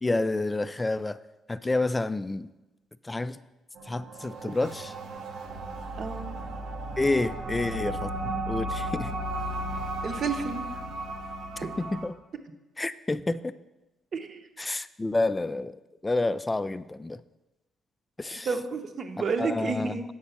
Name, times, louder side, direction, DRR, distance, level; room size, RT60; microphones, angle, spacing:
voice 1, 0.0-1.2 1.5-2.5 3.1-3.4 3.9-4.9 7.0-8.1 8.5-9.1 11.8-12.2 12.8-13.5 14.6-15.8 16.0-17.2 18.2-18.5 19.4-19.9, left 2 dB, 20° left, 14 dB, 0.3 m, -29 dB
sound 1, 3.7-12.1, right 1 dB, 90° right, 0.9 m, -35 dB
voice 2, 6.0-6.4 10.0-10.7 11.6-11.7 14.1-14.5 18.3-20.0, right 5 dB, 50° right, 6 dB, 0.8 m, -31 dB
8.0 x 5.0 x 5.7 m, 1.0 s
cardioid pair, 90°, 0 cm